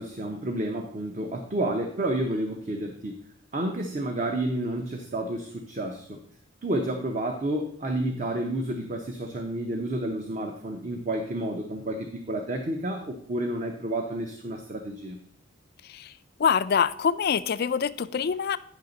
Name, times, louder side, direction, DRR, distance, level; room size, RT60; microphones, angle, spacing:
voice 1, 0.0-3.2 3.5-6.2 6.6-15.2, right 1 dB, 35° right, 4 dB, 0.6 m, -30 dB
voice 2, 16.4-18.6, left 6 dB, 45° left, 13 dB, 0.3 m, -25 dB
9.1 x 5.8 x 3.9 m, 0.62 s
head